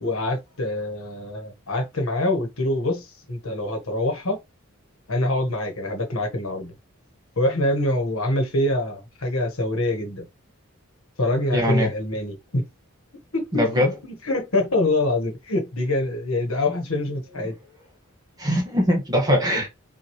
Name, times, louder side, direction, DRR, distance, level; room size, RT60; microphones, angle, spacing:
voice 1, 0.0-4.4 5.1-6.7 7.4-10.3 11.2-12.6 13.3-13.9 14.2-17.6, left 1 dB, 75° left, 1.3 m, -25 dB
voice 2, 11.5-11.9 13.5-13.9 18.4-19.7, equal, 20° right, 1.5 m, -21 dB
5.8 x 2.6 x 3.1 m
head